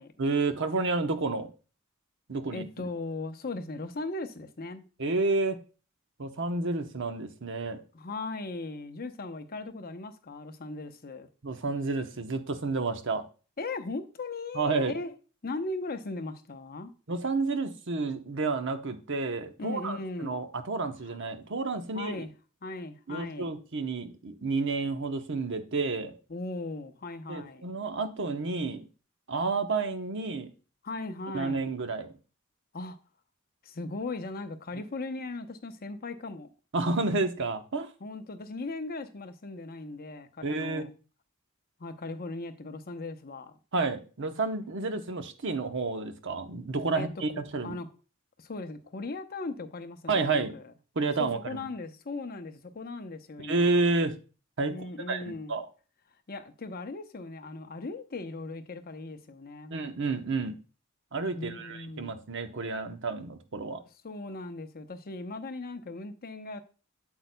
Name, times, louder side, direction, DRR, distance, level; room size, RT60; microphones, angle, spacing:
voice 1, 0.2-1.5 2.3-2.9 5.0-5.6 6.2-7.8 11.4-13.2 14.5-14.9 17.1-22.2 23.1-26.1 27.3-28.9 29.3-30.5 31.3-32.1 36.7-37.9 40.4-40.9 43.7-47.8 50.1-50.5 51.0-51.6 53.4-54.1 54.6-54.7 55.1-55.6 59.7-60.6 61.1-63.8, right 3 dB, 60° right, 0.9 m, -30 dB
voice 2, 2.5-4.8 7.9-11.3 13.6-15.1 15.4-16.9 19.6-20.3 21.0-21.2 21.9-22.3 22.6-23.6 26.3-27.7 30.8-31.7 32.7-33.0 33.6-36.5 38.0-40.9 41.8-43.5 46.9-47.1 47.6-47.9 48.4-50.7 51.2-53.8 54.7-55.5 56.3-59.8 61.3-62.1 64.0-66.6, left 3 dB, 45° left, 0.8 m, -38 dB
8.2 x 7.9 x 2.2 m
head